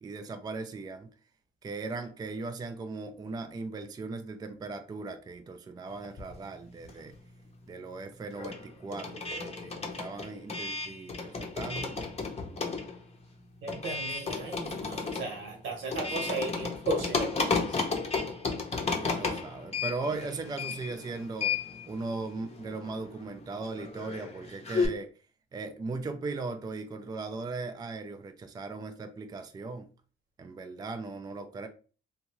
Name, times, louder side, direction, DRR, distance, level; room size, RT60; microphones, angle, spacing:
voice 1, 0.0-1.1 1.6-7.1 7.7-12.0 19.0-21.5 21.9-25.1 25.5-29.9 30.4-31.7, right 3 dB, 20° right, 0.3 m, -38 dB
sound 1, 6.0-7.3 7.6-24.9, left 4 dB, 30° left, 0.7 m, -34 dB
voice 2, 13.6-17.8, right 2 dB, 80° right, 1.1 m, -35 dB
2.7 x 2.3 x 3.0 m
cardioid pair, 90°, 20 cm